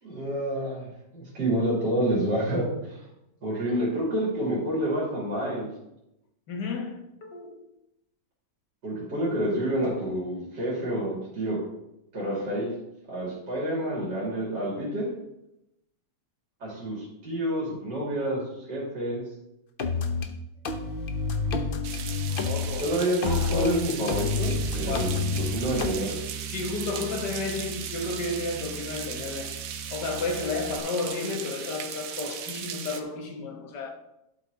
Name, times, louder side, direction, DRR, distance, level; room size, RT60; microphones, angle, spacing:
voice 1, 0.0-3.0 3.4-5.7 8.8-11.6 12.1-12.7 13.1-15.1 16.6-18.4 18.7-19.2 22.8-26.2, right 1 dB, 80° right, 3.7 m, -28 dB
voice 2, 6.5-7.7 21.5-21.6 22.3-23.8 24.9-25.3 26.5-29.6 29.9-33.9, left 3 dB, 75° left, 1.9 m, -32 dB
sound 1, 19.8-20.3 20.6-23.7 24.1-25.9, left 4 dB, 50° left, 0.6 m, -28 dB
sound 2, 21.8-33.0, right 8 dB, 60° right, 1.0 m, -37 dB
Bass guitar, 24.5-30.8, right 6 dB, 10° right, 1.1 m, -40 dB
12.0 x 6.0 x 3.9 m
omnidirectional pair, 1.9 m